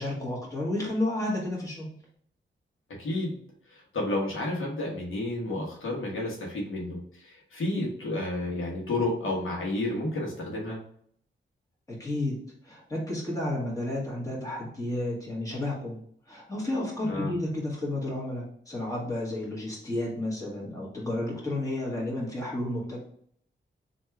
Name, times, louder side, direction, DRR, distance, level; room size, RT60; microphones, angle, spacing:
voice 1, 0.0-1.9 11.9-12.4 12.6-16.0 16.3-23.0, left 1 dB, 15° left, -5 dB, 1.7 m, -31 dB
voice 2, 3.0-3.4 3.7-10.8 17.0-17.3, left 2 dB, 85° left, -2 dB, 1.2 m, -31 dB
3.4 x 2.7 x 4.5 m, 0.63 s
wide cardioid pair, 90°, 20 cm